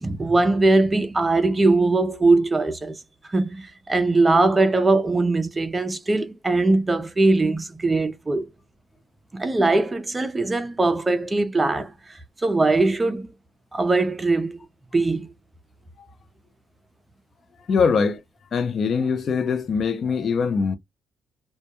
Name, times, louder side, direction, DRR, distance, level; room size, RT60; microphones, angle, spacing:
voice 1, 0.0-3.0 3.3-8.4 9.3-11.9 12.4-13.3 13.7-14.6 14.9-15.3, right 2 dB, 20° right, 0.4 m, -21 dB
voice 2, 17.7-18.2 18.5-20.8, left 5 dB, 45° left, 0.4 m, -22 dB
2.2 x 2.1 x 2.8 m
cardioid pair, 115°, 0 cm